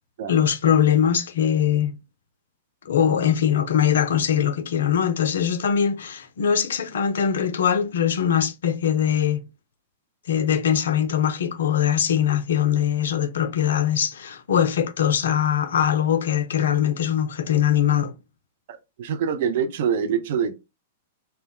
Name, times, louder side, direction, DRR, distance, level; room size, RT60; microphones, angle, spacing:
voice 1, 0.3-2.0 2.9-9.4 10.3-18.1, left 9 dB, 65° left, 0.3 m, -22 dB
voice 2, 18.7-20.6, right 7 dB, 55° right, 0.4 m, -25 dB
2.2 x 2.0 x 3.6 m
figure-of-eight pair, 100°, 0 cm